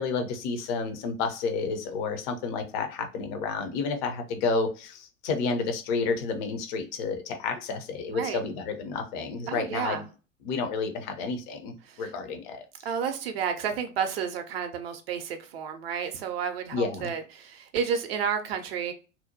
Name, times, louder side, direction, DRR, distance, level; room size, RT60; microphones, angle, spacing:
voice 1, 0.0-10.0 10.4-12.6 16.7-17.1, left 4 dB, 40° left, 6 dB, 0.6 m, -30 dB
voice 2, 8.1-8.5 9.5-10.0 11.8-12.1 12.8-18.9, right 7 dB, 50° right, 6 dB, 0.5 m, -31 dB
2.8 x 2.0 x 2.6 m, 0.34 s
figure-of-eight pair, 90°, 39 cm